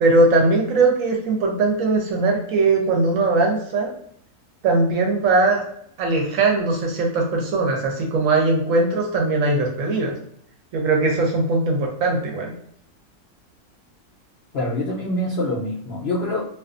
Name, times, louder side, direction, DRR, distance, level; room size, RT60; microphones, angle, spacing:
voice 1, 0.0-3.9 4.6-5.6 6.0-10.1 10.7-12.5, right 3 dB, 70° right, 0 dB, 0.9 m, -20 dB
voice 2, 14.5-16.4, left 1 dB, 70° left, -5 dB, 0.6 m, -25 dB
2.5 x 2.3 x 2.4 m, 0.67 s
omnidirectional pair, 1.6 m